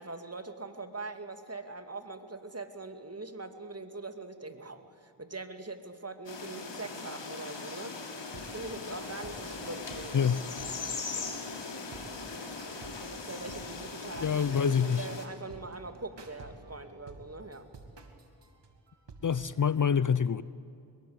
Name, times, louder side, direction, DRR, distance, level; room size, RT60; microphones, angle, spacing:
voice 1, 0.0-8.0 8.3-10.3 11.1-11.5 12.6-17.7, right 3 dB, 30° right, 8 dB, 2.4 m, -42 dB
sound 1, 6.3-15.3, left 4 dB, 70° left, 3.3 m, -40 dB
sound 2, 8.2-19.4, right 3 dB, 65° right, 2.8 m, -51 dB
voice 2, 10.1-10.4 14.2-15.1 19.2-20.4, left 7 dB, 45° left, 18 dB, 0.6 m, -26 dB
23.0 x 22.0 x 8.2 m, 2.6 s
cardioid pair, 45°, 46 cm